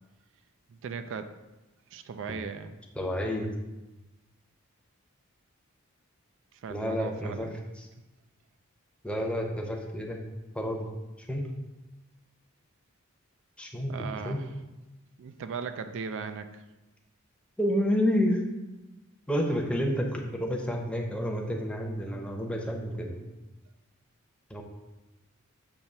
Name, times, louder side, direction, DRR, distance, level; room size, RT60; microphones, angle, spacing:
voice 1, 0.7-1.3 1.9-2.8 6.5-7.7 13.9-14.5 15.2-16.6, right 5 dB, 60° right, 9 dB, 0.4 m, -38 dB
voice 2, 3.0-3.5 6.7-7.5 9.0-10.2 10.5-10.9 11.3-11.5 13.6-14.4 17.6-18.4 19.3-23.2 24.5-24.6, equal, 5° left, 0 dB, 0.7 m, -29 dB
7.1 x 2.9 x 5.4 m, 1.1 s
head